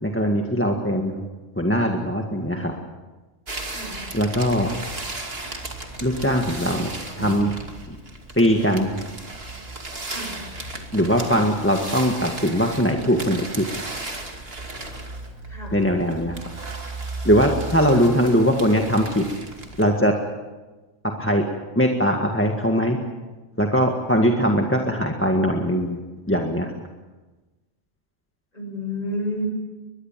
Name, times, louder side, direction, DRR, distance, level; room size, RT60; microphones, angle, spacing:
voice 1, 0.0-1.2 1.6-2.7 4.1-4.7 6.0-7.6 8.4-9.0 10.9-13.7 15.7-16.4 17.2-19.3 19.8-20.2 21.0-21.4 21.8-23.0 23.6-26.0 26.3-26.7, equal, 10° left, 1 dB, 1.7 m, -21 dB
sound 1, 3.5-19.8, right 2 dB, 55° right, 2.8 m, -35 dB
voice 2, 3.7-4.0 10.1-10.4 15.5-15.8 28.5-29.5, left 1 dB, 35° left, 3 dB, 6.3 m, -30 dB
23.0 x 21.0 x 7.5 m, 1.2 s
omnidirectional pair, 1.3 m